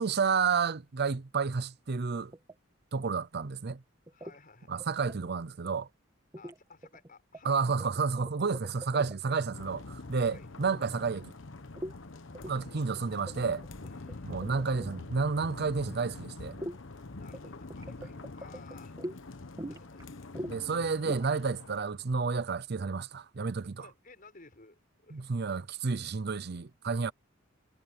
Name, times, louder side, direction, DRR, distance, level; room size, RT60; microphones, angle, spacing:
voice 1, 0.0-2.3 2.9-3.8 4.7-5.9 7.4-11.3 12.5-13.6 14.3-16.6 20.5-23.8 25.1-27.1, right 5 dB, 55° right, 0.6 m, -31 dB
sound 1, 2.3-2.5 4.1-4.4 4.8-5.1 6.3-6.6 6.8-7.5 7.8-9.4 11.8-11.9 12.3-12.6 13.0-13.1 13.3-15.0 16.6-16.8 17.3-19.2 19.6-20.0 20.3-20.6 20.9-21.3, equal, 20° right, 1.9 m, -41 dB
voice 2, 4.1-4.8 6.3-7.6 10.3-10.5 12.4-13.1 13.8-14.5 17.1-20.4 23.8-25.3, left 3 dB, 45° left, 6.2 m, -57 dB
sound 2, 9.5-21.8, left 3 dB, 70° left, 1.1 m, -45 dB
head